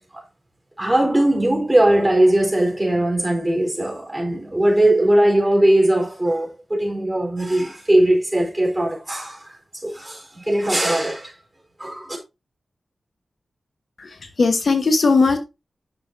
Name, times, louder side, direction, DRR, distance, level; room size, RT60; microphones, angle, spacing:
voice 1, 0.8-9.6 9.8-11.3 11.8-12.2, right 1 dB, 15° right, 3.9 m, -19 dB
voice 2, 14.0-15.4, left 3 dB, 60° left, 1.2 m, -18 dB
10.0 x 6.5 x 2.6 m
wide cardioid pair, 90°, 0 cm